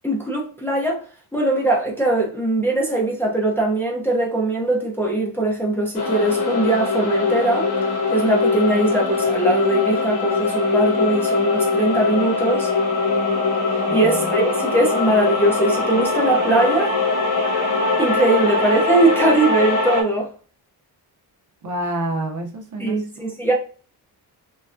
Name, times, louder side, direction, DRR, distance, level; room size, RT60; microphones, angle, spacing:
voice 1, 0.0-1.0 1.3-7.7 8.1-12.7 13.9-17.0 18.0-20.3 22.8-23.5, right 2 dB, 5° left, 0.5 m, -20 dB
sound 1, 5.9-20.0, left 3 dB, 80° left, 1.0 m, -21 dB
voice 2, 21.6-23.0 23.5-23.6, right 1 dB, 50° right, 0.7 m, -28 dB
3.1 x 2.3 x 2.5 m
wide cardioid pair, 165°, 39 cm